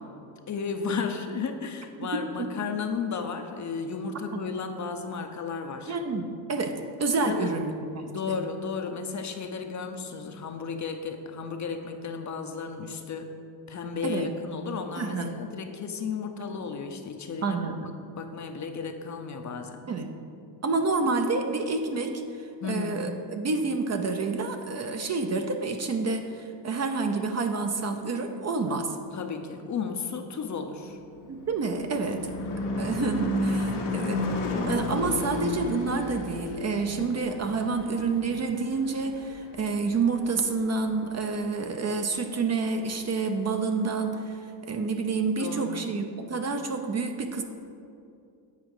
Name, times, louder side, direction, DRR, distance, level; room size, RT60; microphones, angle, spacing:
voice 1, 0.5-5.9 7.2-7.5 8.1-13.4 13.7-17.6 18.2-19.8 22.6-23.1 29.1-31.0 33.7-34.2 45.4-45.9, left 5 dB, 35° left, 5 dB, 0.6 m, -34 dB
voice 2, 2.1-2.5 4.3-4.4 5.9-8.4 14.0-14.3 15.0-15.3 17.4-17.9 19.9-20.1 20.6-29.0 31.3-32.3 32.8-34.2 34.7-47.4, right 4 dB, 35° right, 5 dB, 0.6 m, -29 dB
Car passing by / Truck / Engine, 30.9-39.6, left 2 dB, 90° left, 1.3 m, -32 dB
8.3 x 4.9 x 4.8 m, 2.5 s
cardioid pair, 90°, 50 cm